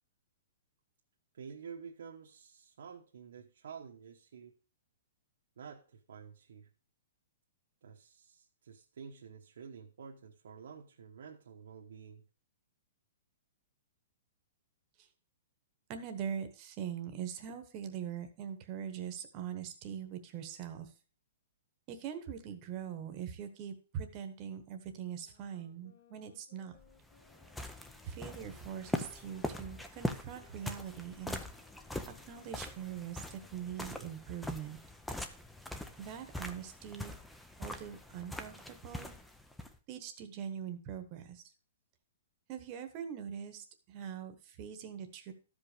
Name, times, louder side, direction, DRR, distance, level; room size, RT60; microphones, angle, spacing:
voice 1, 1.3-4.5 5.6-6.7 7.8-12.3, right 6 dB, 70° right, 1.1 m, -50 dB
voice 2, 15.9-20.9 21.9-26.8 28.0-31.4 32.1-34.8 36.0-37.1 37.6-39.2 39.9-41.4 42.5-45.3, right 8 dB, 25° right, 1.1 m, -42 dB
sound 1, 25.2-29.9 30.3-35.3, left 7 dB, 55° left, 2.3 m, -66 dB
sound 2, 26.8-39.8, left 1 dB, ahead, 0.5 m, -42 dB
13.0 x 5.2 x 5.0 m
hypercardioid pair, 175°, 0 cm